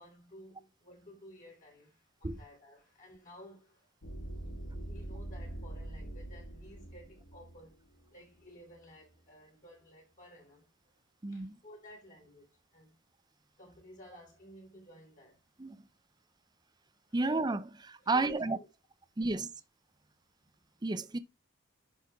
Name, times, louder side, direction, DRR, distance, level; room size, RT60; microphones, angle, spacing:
voice 1, 0.0-3.9 4.8-7.8 8.1-13.0 13.6-15.4 17.1-17.2 18.0-18.7 19.2-19.5, left 1 dB, 40° left, 5.4 m, -55 dB
sound 1, 4.0-8.6, right 1 dB, 75° left, 2.2 m, -44 dB
voice 2, 11.2-11.5 15.6-15.8 17.1-18.6 19.2-19.5 20.8-21.2, right 3 dB, 20° right, 0.5 m, -31 dB
10.5 x 5.7 x 3.5 m
head